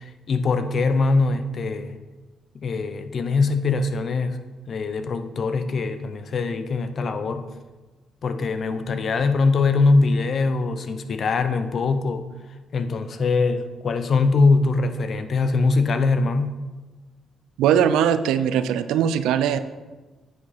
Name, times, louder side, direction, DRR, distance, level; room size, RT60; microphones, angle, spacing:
voice 1, 0.0-2.0 2.5-4.4 4.7-7.5 8.2-12.3 12.7-16.6, left 3 dB, 55° left, 9 dB, 0.8 m, -22 dB
voice 2, 17.6-19.6, right 9 dB, 80° right, 12 dB, 0.5 m, -20 dB
9.6 x 7.2 x 4.2 m, 1.2 s
supercardioid pair, 55°, 0 cm